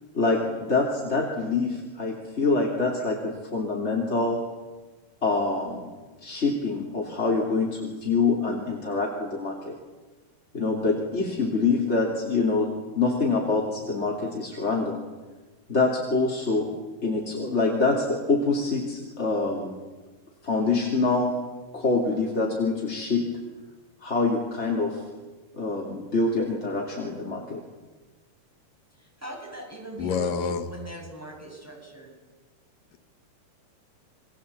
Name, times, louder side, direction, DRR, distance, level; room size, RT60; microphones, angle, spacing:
voice 1, 0.1-4.4 5.2-5.9 6.2-9.7 10.5-12.7 12.9-15.0 15.7-16.7 17.0-19.8 20.4-21.3 21.7-23.2 24.0-25.0 25.5-27.6, left 3 dB, 20° left, -1 dB, 3.1 m, -25 dB
voice 2, 28.9-32.1, right 2 dB, 5° right, 0 dB, 7.1 m, -40 dB
voice 3, 30.0-30.7, left 6 dB, 85° left, 8 dB, 3.2 m, -27 dB
29.0 x 22.5 x 8.5 m, 1.3 s
omnidirectional pair, 3.8 m